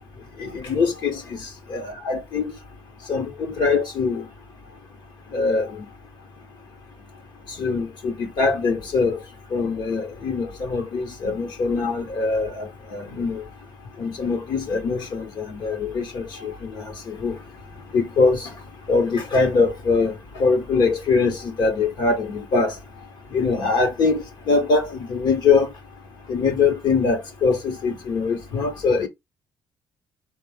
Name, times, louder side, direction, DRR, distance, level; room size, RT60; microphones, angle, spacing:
voice 1, 0.4-2.5 3.1-4.2 5.3-5.9 7.6-9.2 9.5-13.4 14.0-17.4 17.9-18.5 18.9-22.7 23.3-25.7 26.3-29.1, left 4 dB, 60° left, 1.6 m, -23 dB
4.5 x 2.9 x 3.7 m
cardioid pair, 130°, 8 cm